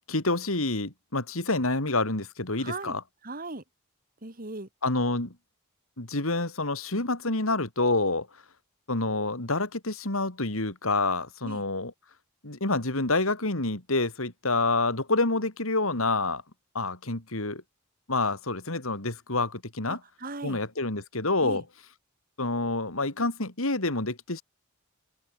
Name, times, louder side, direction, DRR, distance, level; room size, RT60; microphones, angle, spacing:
voice 1, 0.1-3.0 4.8-5.3 6.0-8.3 8.9-11.9 12.4-16.4 16.7-17.6 18.1-20.0 20.4-21.6 22.4-24.4, left 2 dB, 85° left, 3.8 m, -28 dB
voice 2, 2.6-3.0 3.2-3.6 4.2-4.7 11.4-11.6 19.9-20.6 21.4-21.6, right 2 dB, 45° right, 2.4 m, -38 dB
open air
head